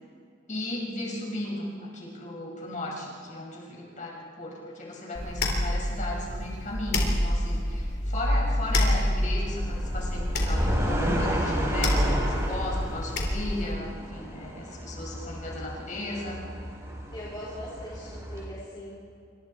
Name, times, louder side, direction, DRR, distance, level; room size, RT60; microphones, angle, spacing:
voice 1, 0.5-16.4, left 1 dB, 45° left, -2 dB, 5.9 m, -36 dB
sound 1, 5.1-13.7, left 1 dB, 60° left, 3.6 m, -27 dB
sound 2, 9.5-18.4, equal, 15° right, 4.2 m, -33 dB
voice 2, 17.1-19.1, equal, 25° left, -8 dB, 3.9 m, -40 dB
28.0 x 24.5 x 4.5 m, 2.4 s
head